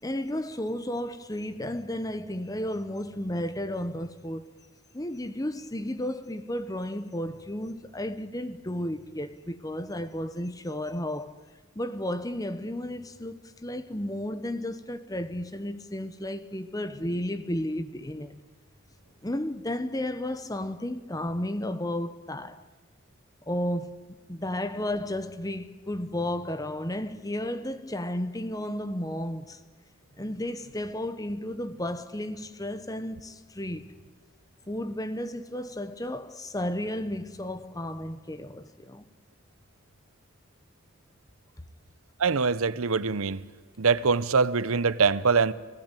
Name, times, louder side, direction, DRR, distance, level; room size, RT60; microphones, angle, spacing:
voice 1, 0.0-4.5 4.9-11.4 11.7-18.4 19.2-22.6 23.5-29.6 30.2-33.9 34.7-39.1, left 1 dB, 15° left, 0.9 m, -33 dB
voice 2, 42.2-43.4 43.8-45.5, right 5 dB, 75° right, 0.7 m, -23 dB
29.5 x 17.0 x 9.1 m
head